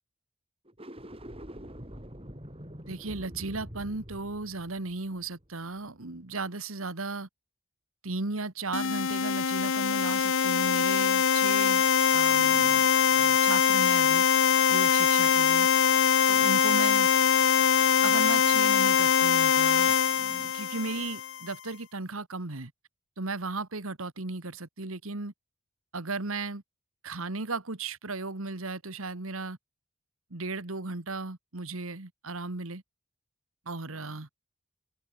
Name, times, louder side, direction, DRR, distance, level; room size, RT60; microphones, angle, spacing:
sound 1, 0.7-6.0, equal, 25° right, 5.9 m, -45 dB
voice 1, 2.9-7.3 8.0-11.8 12.1-14.3 14.7-15.7 16.3-17.1 18.0-22.7 23.2-25.3 25.9-26.6 27.0-29.6 30.3-32.8 33.7-34.3, right 3 dB, 75° right, 1.8 m, -36 dB
sound 2, 8.7-21.4, left 7 dB, 65° left, 0.7 m, -23 dB
head